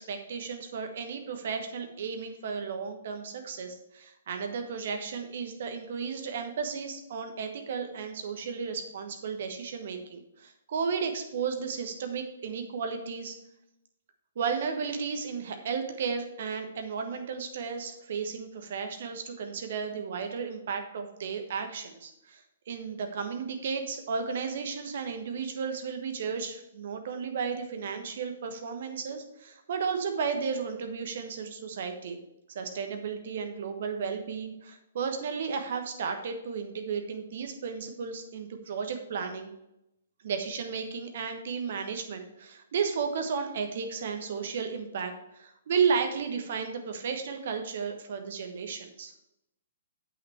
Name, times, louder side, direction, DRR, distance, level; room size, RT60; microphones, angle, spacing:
voice 1, 0.1-13.4 14.3-32.2 32.5-39.5 40.2-49.1, right 5 dB, 50° right, 6 dB, 1.2 m, -33 dB
8.0 x 6.0 x 4.6 m, 0.86 s
figure-of-eight pair, 120°, 0 cm